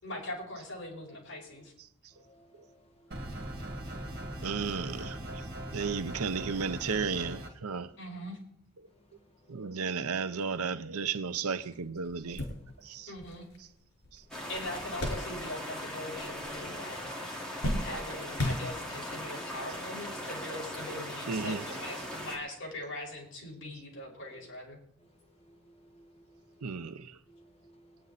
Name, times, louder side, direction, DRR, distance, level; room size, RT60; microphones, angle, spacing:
voice 1, 0.0-1.7 8.0-8.4 13.1-13.4 14.5-24.8, left 1 dB, 60° left, 5.1 m, -41 dB
voice 2, 2.2-2.8 3.1-3.9 9.5-9.7 12.5-12.6 25.5-26.4 27.3-28.0, right 1 dB, 25° left, 1.4 m, -60 dB
sound 1, 3.1-7.5, right 1 dB, 50° right, 2.4 m, -40 dB
voice 3, 4.4-5.4 5.7-7.9 9.5-12.4 12.8-13.1 14.1-14.2 21.3-21.7 26.6-27.2, right 5 dB, 80° right, 0.7 m, -34 dB
sound 2, 11.5-11.6 12.0-15.8 16.1-16.8 17.1-19.2 19.9-20.0 21.3-21.5, left 1 dB, 85° left, 4.6 m, -37 dB
sound 3, 14.3-22.4, equal, 5° left, 2.4 m, -39 dB
23.5 x 9.7 x 4.1 m
head